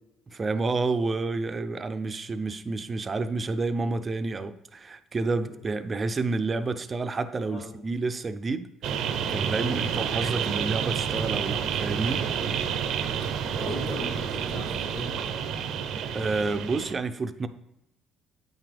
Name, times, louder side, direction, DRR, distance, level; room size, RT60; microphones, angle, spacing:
voice 1, 0.3-8.7 9.3-12.2 16.1-17.5, right 3 dB, 30° right, 10 dB, 0.5 m, -29 dB
sound 1, 8.8-16.9, right 7 dB, 70° right, 0.7 m, -29 dB
voice 2, 9.5-10.1 13.6-15.2, left 1 dB, 50° left, -1 dB, 2.8 m, -38 dB
8.8 x 5.8 x 3.4 m, 0.86 s
cardioid pair, 115°, 0 cm